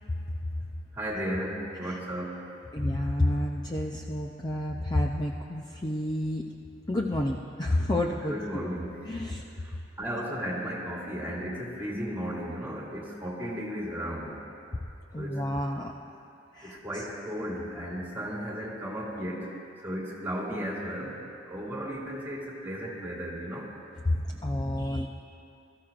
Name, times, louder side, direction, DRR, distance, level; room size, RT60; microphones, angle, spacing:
voice 1, 0.9-2.4 8.2-8.9 9.6-14.4 15.2-15.4 16.6-19.5 19.8-23.7, equal, 10° right, -5 dB, 2.1 m, -35 dB
voice 2, 2.7-6.4 6.9-8.7 9.1-9.4 15.1-15.9 16.5-16.8 24.0-25.1, left 1 dB, 20° left, 0 dB, 0.5 m, -29 dB
22.0 x 14.0 x 2.5 m, 2.6 s
head